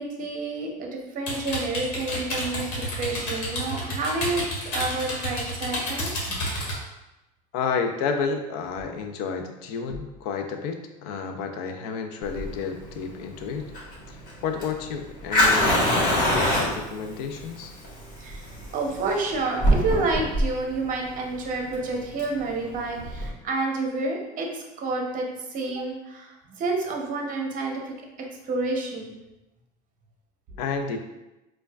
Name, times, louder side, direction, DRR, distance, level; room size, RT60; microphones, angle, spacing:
voice 1, 0.0-6.1 18.2-18.5 18.7-29.2, right 3 dB, 45° right, 1 dB, 0.8 m, -29 dB
sound 1, 1.3-6.8, left 1 dB, 70° left, 1.2 m, -30 dB
voice 2, 7.5-13.7 14.1-17.7 30.6-31.0, left 5 dB, 85° left, 6 dB, 0.5 m, -31 dB
Fire, 12.2-23.3, equal, 45° left, 1.4 m, -25 dB
4.4 x 2.3 x 2.3 m, 0.99 s
supercardioid pair, 115°, 20 cm